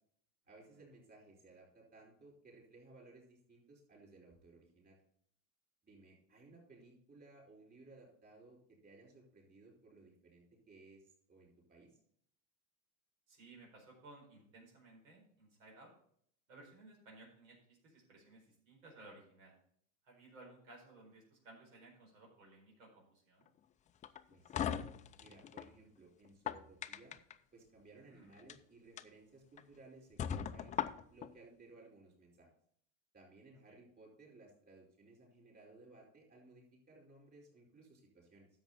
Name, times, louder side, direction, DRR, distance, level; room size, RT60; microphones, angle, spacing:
voice 1, 0.5-5.0 5.8-12.0 24.3-24.9 25.2-27.2 27.5-30.8 31.1-32.5 33.1-38.5, right 2 dB, 25° right, -2 dB, 4.7 m, -60 dB
voice 2, 13.3-15.9 16.5-19.5 20.0-23.5 28.1-28.3 33.5-33.8, right 2 dB, 90° right, 0 dB, 4.6 m, -58 dB
sound 1, 24.0-25.7 26.2-27.3 28.3-28.5 29.0-29.1 29.6-29.7 30.2-31.3, left 9 dB, 20° left, 0.3 m, -39 dB
10.5 x 7.3 x 4.3 m, 0.63 s
supercardioid pair, 120°, 39 cm